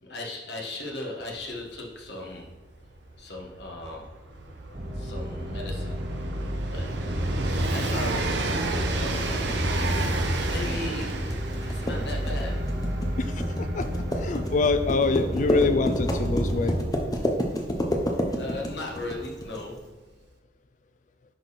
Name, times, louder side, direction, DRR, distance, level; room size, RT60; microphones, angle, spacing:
voice 1, 0.0-2.5 3.2-4.1 5.0-6.0 6.6-6.9 7.7-9.5 10.4-12.7 18.3-20.0, left 2 dB, 70° left, -1 dB, 1.6 m, -37 dB
Train, 1.3-1.4 1.6-18.2 19.2-19.3, right 2 dB, 70° right, 0.7 m, -33 dB
sound 1, 4.7-16.8, equal, 40° right, 0.9 m, -31 dB
sound 2, 8.0-19.6, equal, 20° left, 0.8 m, -30 dB
voice 2, 13.2-13.9 14.1-16.8, left 3 dB, 40° left, 9 dB, 0.3 m, -25 dB
10.5 x 4.0 x 4.2 m, 1.3 s
head